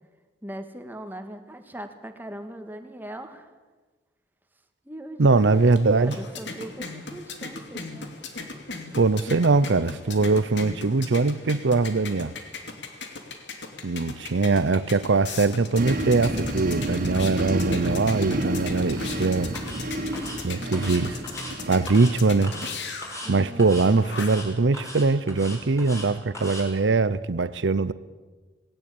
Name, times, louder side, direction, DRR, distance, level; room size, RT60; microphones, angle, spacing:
voice 1, 0.4-3.5 4.8-8.1 13.0-13.1 23.2-23.8, right 1 dB, 10° right, 1.8 m, -40 dB
voice 2, 5.2-6.1 9.0-12.3 13.8-19.5 20.4-21.2 21.7-22.6 23.3-27.9, right 3 dB, 85° right, 0.7 m, -22 dB
sound 1, 5.4-24.5, left 4 dB, 75° left, 2.8 m, -39 dB
sound 2, 15.8-22.2, right 1 dB, 50° right, 2.4 m, -30 dB
sound 3, 19.0-19.2 19.5-19.8 20.1-20.4 20.7-21.5 21.9-22.1 22.4-22.7 23.0-23.3 23.6-23.9 24.2-24.5 24.7-26.1 26.3-26.6, left 1 dB, 15° left, 5.5 m, -38 dB
19.0 x 18.0 x 8.7 m
head